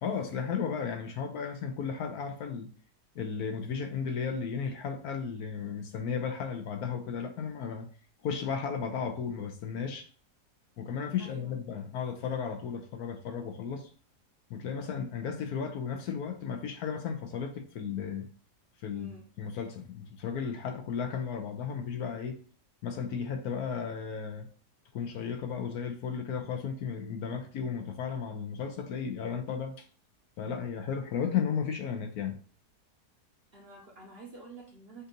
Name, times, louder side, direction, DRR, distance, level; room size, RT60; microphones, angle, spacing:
voice 1, 0.0-2.7 3.1-7.9 8.2-10.1 10.8-13.9 14.5-18.3 18.8-19.1 19.4-22.4 22.8-24.5 24.9-29.9 30.4-32.4, left 6 dB, 70° left, 1.1 m, -34 dB
voice 2, 11.2-11.5 18.9-19.3 33.5-35.1, right 3 dB, 45° right, 0.9 m, -49 dB
5.3 x 2.6 x 3.9 m
omnidirectional pair, 1.8 m